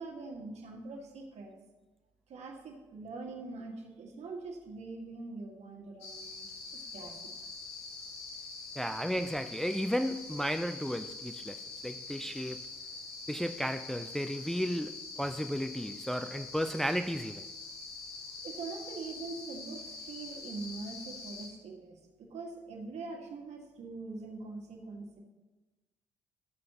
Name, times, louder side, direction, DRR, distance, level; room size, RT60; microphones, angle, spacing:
voice 1, 0.0-1.6 2.3-6.5 6.7-7.3 18.4-25.2, right 3 dB, 60° right, 1.9 m, -43 dB
sound 1, 6.0-21.5, left 3 dB, 85° left, 1.4 m, -44 dB
voice 2, 8.8-12.7 13.3-17.5, equal, 5° left, 0.4 m, -34 dB
13.5 x 7.6 x 3.0 m
hypercardioid pair, 50°, 13 cm